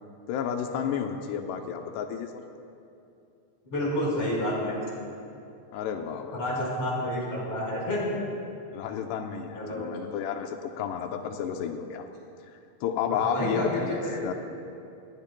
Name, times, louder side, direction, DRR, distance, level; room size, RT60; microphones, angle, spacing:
voice 1, 0.3-2.3 5.7-6.4 8.7-12.1 12.8-13.9 14.2-14.3, left 8 dB, 90° left, 4 dB, 2.3 m, -31 dB
voice 2, 3.7-4.8 6.3-8.2 9.6-9.9 13.1-14.2, left 1 dB, 30° left, -4 dB, 5.3 m, -29 dB
27.5 x 20.5 x 2.3 m, 2.6 s
omnidirectional pair, 5.7 m